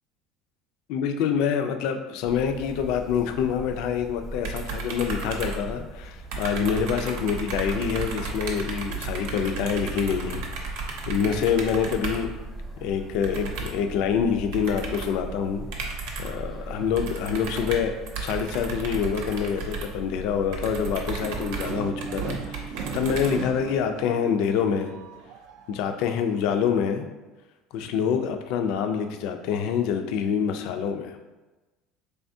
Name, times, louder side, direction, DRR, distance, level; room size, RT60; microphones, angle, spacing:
voice 1, 0.9-12.3 12.8-15.9 16.2-24.9 25.7-27.1 27.7-31.2, left 7 dB, 60° left, 6 dB, 0.3 m, -26 dB
sound 1, 2.2-21.8, right 2 dB, 10° right, 0.5 m, -40 dB
sound 2, 4.4-6.0 6.3-12.3 13.2-13.9 14.5-15.2 15.7-16.5 17.0-23.8, right 4 dB, 80° right, 0.7 m, -34 dB
sound 3, 21.2-26.2, right 5 dB, 65° right, 0.3 m, -37 dB
4.1 x 3.4 x 2.6 m, 1.1 s
cardioid pair, 160°, 0 cm